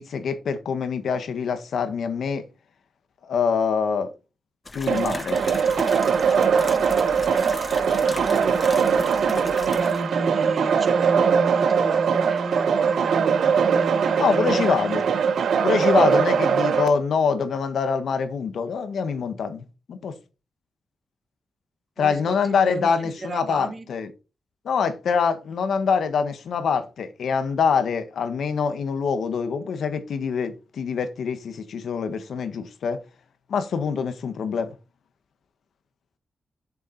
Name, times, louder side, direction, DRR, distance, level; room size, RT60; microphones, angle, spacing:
voice 1, 0.0-2.4 3.2-4.1 4.7-5.4 14.2-15.0 15.6-20.1 22.0-24.1 24.6-33.0 33.5-34.7, left 6 dB, 75° left, 1.5 m, -25 dB
sound 1, 4.7-10.0, left 3 dB, 25° left, 0.6 m, -36 dB
sound 2, 4.9-16.9, right 6 dB, 80° right, 0.8 m, -21 dB
voice 2, 7.9-8.6 9.0-15.3 22.0-23.9, right 3 dB, 35° right, 1.4 m, -32 dB
7.1 x 7.0 x 4.1 m
wide cardioid pair, 130°, 0 cm